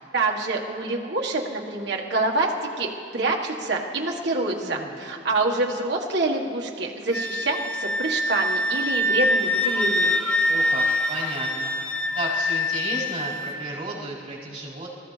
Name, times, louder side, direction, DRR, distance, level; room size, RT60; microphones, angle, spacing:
voice 1, 0.0-2.5 2.8-10.3, right 2 dB, 60° right, -1 dB, 1.6 m, -26 dB
voice 2, 4.6-5.0 10.5-11.7 12.1-14.9, right 2 dB, 30° right, -8 dB, 4.8 m, -33 dB
Wind instrument woodwind instrument, 7.1-13.5, left 1 dB, 5° left, 0.6 m, -24 dB
26.5 x 15.0 x 3.3 m, 2.5 s
head